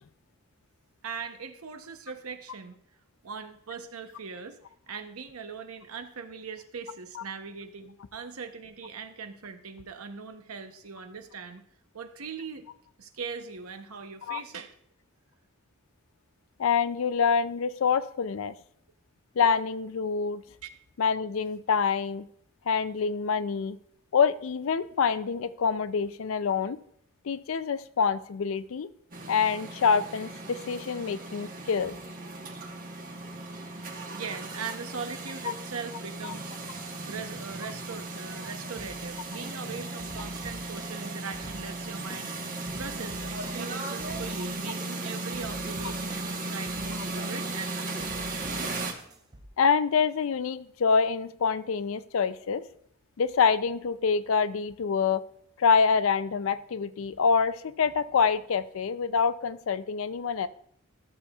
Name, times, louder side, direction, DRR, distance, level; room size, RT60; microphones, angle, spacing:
voice 1, 1.0-2.7 3.2-4.6 4.9-11.6 11.9-12.7 13.0-14.8 20.6-20.7 33.7-36.5 37.1-42.3 42.8-48.3, right 5 dB, 85° right, 8 dB, 0.8 m, -40 dB
voice 2, 16.6-18.5 19.4-20.4 21.0-22.3 22.7-23.8 24.1-26.8 27.2-28.9 29.3-32.0 49.6-52.6 53.2-55.2 55.6-60.5, left 6 dB, 65° left, 14 dB, 0.4 m, -26 dB
sound 1, 29.1-48.9, right 2 dB, 40° right, 1.1 m, -36 dB
sound 2, 38.8-49.5, right 1 dB, 20° right, 0.6 m, -47 dB
13.5 x 7.0 x 2.4 m, 0.67 s
head